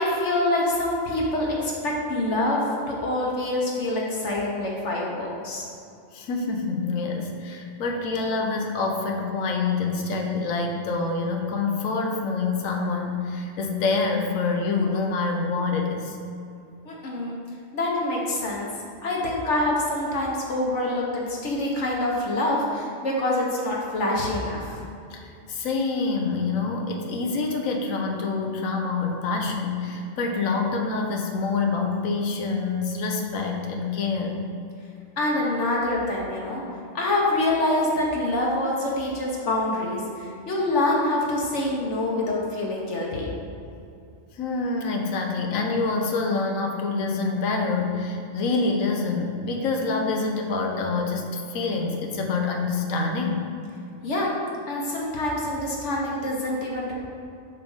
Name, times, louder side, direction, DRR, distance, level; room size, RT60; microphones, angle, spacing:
voice 1, 0.0-5.7 16.8-17.4 17.7-18.7 19.0-24.7 35.2-36.6 36.9-43.3 54.0-54.3 54.7-56.9, left 1 dB, 65° left, -3 dB, 1.3 m, -26 dB
voice 2, 6.1-16.2 25.1-34.5 44.3-53.5, left 4 dB, 85° left, 2 dB, 1.2 m, -26 dB
7.0 x 3.4 x 5.5 m, 2.6 s
omnidirectional pair, 1.4 m